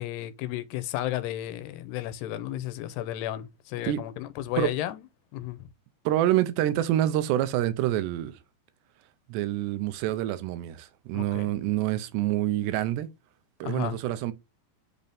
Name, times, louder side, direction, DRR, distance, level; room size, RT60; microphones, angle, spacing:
voice 1, 0.0-5.0 5.3-5.7 11.1-11.5 13.6-14.0, left 13 dB, 90° left, 2.8 m, -33 dB
voice 2, 6.1-8.3 9.3-13.1 13.6-14.3, right 13 dB, 90° right, 3.0 m, -27 dB
8.1 x 4.1 x 3.5 m
omnidirectional pair, 4.8 m